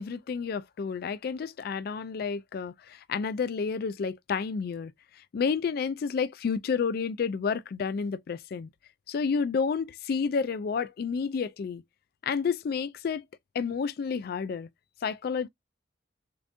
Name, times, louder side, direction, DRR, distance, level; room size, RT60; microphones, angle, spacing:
voice 1, 0.0-4.9 5.3-8.7 9.1-11.8 12.2-13.2 13.5-14.7 15.0-15.5, left 5 dB, 55° left, 0.3 m, -30 dB
6.7 x 2.6 x 2.4 m
head